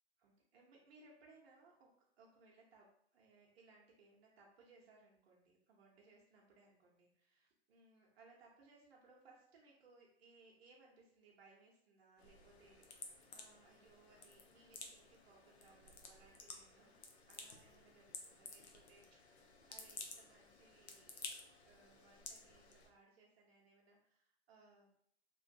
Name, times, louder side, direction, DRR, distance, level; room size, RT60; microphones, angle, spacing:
voice 1, 0.2-1.9 2.2-17.0 17.3-21.2 21.6-24.9, right 3 dB, 70° right, -3 dB, 0.8 m, -66 dB
sound 1, 12.2-22.9, left 4 dB, 85° left, 0.7 m, -54 dB
3.0 x 2.5 x 2.5 m, 0.68 s
hypercardioid pair, 115°, 32 cm